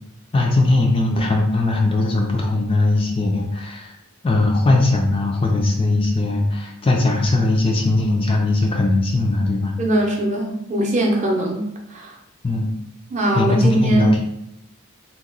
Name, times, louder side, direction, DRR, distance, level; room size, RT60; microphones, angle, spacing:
voice 1, 0.3-3.9 4.2-9.7 12.4-12.7 13.3-14.2, left 2 dB, 25° left, 1 dB, 0.3 m, -19 dB
voice 2, 9.8-12.1 13.1-14.1, right 1 dB, 30° right, -1 dB, 0.6 m, -21 dB
2.9 x 2.2 x 3.8 m, 0.80 s
head